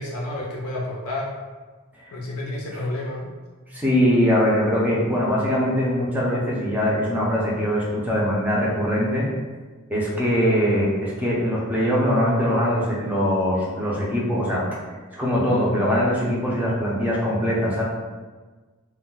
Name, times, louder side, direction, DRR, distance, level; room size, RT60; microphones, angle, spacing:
voice 1, 0.0-1.3 2.1-3.4, left 1 dB, 75° left, -3 dB, 0.5 m, -30 dB
voice 2, 3.7-9.3 9.9-14.7 15.1-17.8, equal, 5° right, -6 dB, 0.5 m, -22 dB
2.3 x 2.1 x 3.7 m, 1.4 s
head